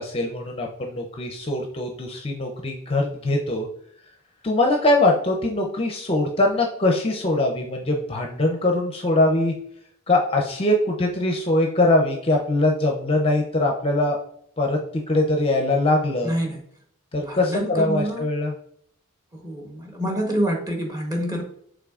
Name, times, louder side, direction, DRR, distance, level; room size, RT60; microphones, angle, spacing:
voice 1, 0.0-3.7 4.4-9.5 10.1-14.2 14.6-14.8 15.1-16.3 17.1-18.5, left 2 dB, 25° left, 2 dB, 0.5 m, -22 dB
voice 2, 16.2-16.6 17.3-18.2 19.3-21.4, right 1 dB, 15° right, 1 dB, 1.0 m, -27 dB
5.8 x 3.6 x 2.4 m, 0.66 s
head